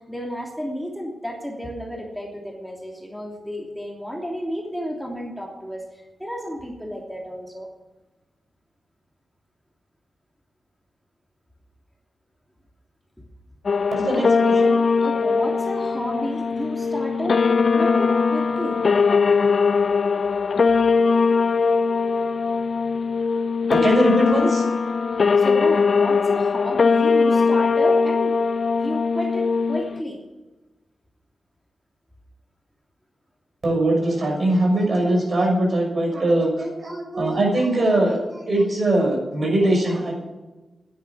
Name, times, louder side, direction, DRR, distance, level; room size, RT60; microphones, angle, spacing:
voice 1, 0.0-7.7 14.1-14.5 15.0-18.8 25.4-28.3 28.8-30.2, equal, ahead, -1 dB, 2.9 m, -32 dB
sound 1, 13.7-30.0, left 5 dB, 60° left, 0.5 m, -20 dB
voice 2, 13.9-14.8 23.7-24.6 33.6-40.1, right 1 dB, 50° right, -1 dB, 6.2 m, -21 dB
10.5 x 10.0 x 9.9 m, 1.2 s
cardioid pair, 65°, 0 cm